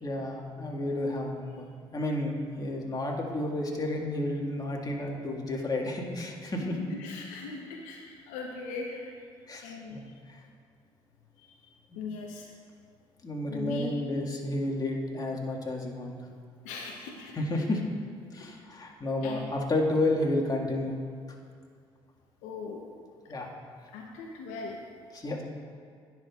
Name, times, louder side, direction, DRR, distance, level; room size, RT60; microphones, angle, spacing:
voice 1, 0.0-6.8 9.5-10.0 10.3-10.4 11.9-12.0 13.2-16.2 17.4-17.8 18.3-21.0 23.3-23.5 25.1-25.4, left 1 dB, 30° left, -1 dB, 1.9 m, -31 dB
voice 2, 7.0-9.1 9.6-10.0 11.4-11.6 12.0-12.5 13.5-13.9 16.6-17.6 19.2-19.5 22.4-22.8 23.9-24.8, left 4 dB, 75° left, 0 dB, 0.8 m, -39 dB
18.0 x 6.1 x 2.4 m, 2.2 s
hypercardioid pair, 50°, 13 cm